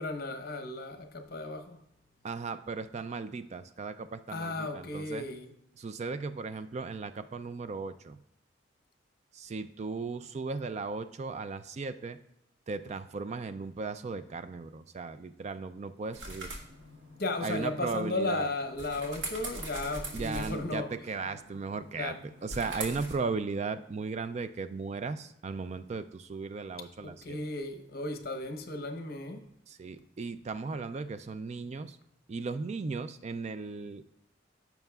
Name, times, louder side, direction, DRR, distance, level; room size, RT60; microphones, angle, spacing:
voice 1, 0.0-1.8 4.3-5.5 17.2-20.9 22.0-22.2 27.0-29.5, left 2 dB, 55° left, 0.9 m, -35 dB
voice 2, 2.2-5.3 5.8-8.2 9.3-12.2 12.7-16.5 17.4-18.5 20.1-22.2 22.4-27.4 29.7-32.0 32.3-34.0, right 4 dB, 35° right, 0.3 m, -36 dB
sound 1, 16.1-23.1, right 2 dB, 90° right, 1.6 m, -43 dB
14.5 x 5.9 x 2.3 m
head